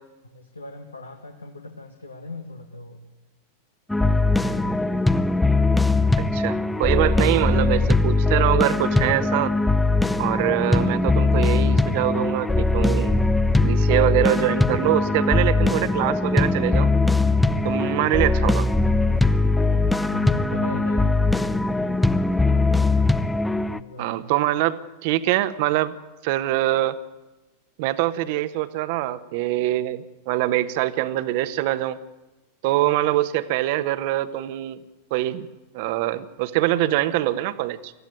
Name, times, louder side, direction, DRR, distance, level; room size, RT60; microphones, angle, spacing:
voice 1, 0.2-3.0 4.0-5.1 17.4-17.9 19.7-22.6 23.5-24.2, left 2 dB, 80° left, 4 dB, 1.8 m, -39 dB
sound 1, 3.9-23.8, left 2 dB, 5° left, 0.8 m, -21 dB
voice 2, 6.2-9.5 10.2-13.3 13.6-16.9 17.6-18.7 24.0-26.0 26.2-27.0 27.8-32.0 32.6-34.8 35.1-35.5 35.7-37.9, right 15 dB, 50° right, 13 dB, 1.3 m, -24 dB
24.5 x 15.0 x 9.3 m, 1.1 s
figure-of-eight pair, 90°, 0 cm